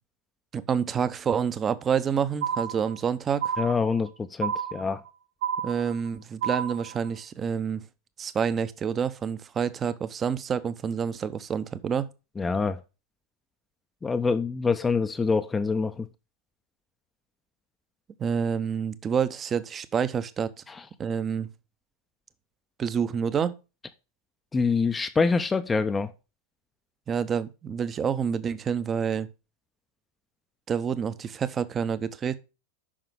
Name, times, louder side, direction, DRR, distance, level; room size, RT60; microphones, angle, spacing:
voice 1, 0.5-3.5 5.6-7.8 8.2-12.1 18.2-20.5 21.0-21.5 22.8-23.5 27.1-29.3 30.7-32.4, right 7 dB, 25° right, 0.7 m, -28 dB
sound 1, 2.4-3.1 3.4-4.1 4.4-5.1 5.4-6.1 6.4-7.1, right 8 dB, 50° right, 1.0 m, -30 dB
voice 2, 3.6-5.0 12.4-12.8 14.0-16.1 20.7-20.8 24.5-26.1, left 4 dB, 15° left, 0.5 m, -25 dB
8.6 x 5.8 x 5.2 m
figure-of-eight pair, 90°, 0 cm